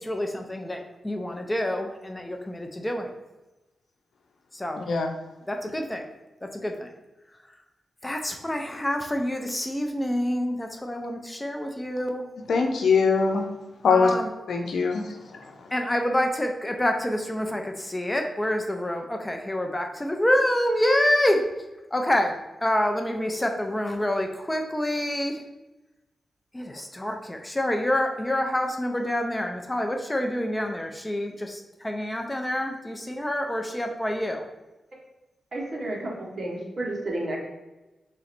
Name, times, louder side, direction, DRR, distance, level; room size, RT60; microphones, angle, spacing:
voice 1, 0.0-3.1 4.5-4.8 5.5-6.0 6.4-6.9 8.0-12.2 13.9-14.3 15.7-21.4 21.9-22.3 22.6-25.4 26.5-34.4, left 1 dB, 15° left, 4 dB, 0.5 m, -27 dB
voice 2, 4.8-5.1 12.5-13.4 13.8-14.1 14.5-15.0, left 5 dB, 85° left, 3 dB, 0.6 m, -21 dB
voice 3, 35.5-37.4, right 1 dB, 50° right, -3 dB, 1.3 m, -31 dB
3.8 x 3.1 x 4.3 m, 1.0 s
wide cardioid pair, 115°, 0 cm